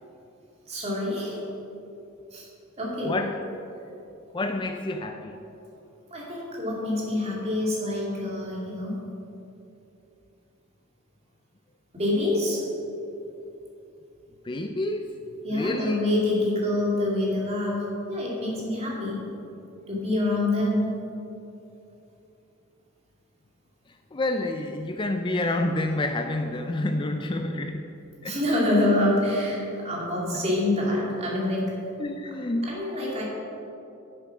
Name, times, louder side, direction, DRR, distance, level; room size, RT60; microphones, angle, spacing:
voice 1, 0.7-1.4 2.3-2.5 2.8-3.2 6.1-9.0 11.9-12.6 15.4-19.3 19.9-21.0 28.2-31.7 32.6-33.2, left 1 dB, 30° right, -4 dB, 2.7 m, -26 dB
voice 2, 3.0-3.4 4.3-5.4 14.4-15.1 15.5-16.0 24.1-27.9 28.2-28.4 32.0-32.8, left 2 dB, 25° left, 5 dB, 0.4 m, -28 dB
9.7 x 7.9 x 5.9 m, 2.9 s
head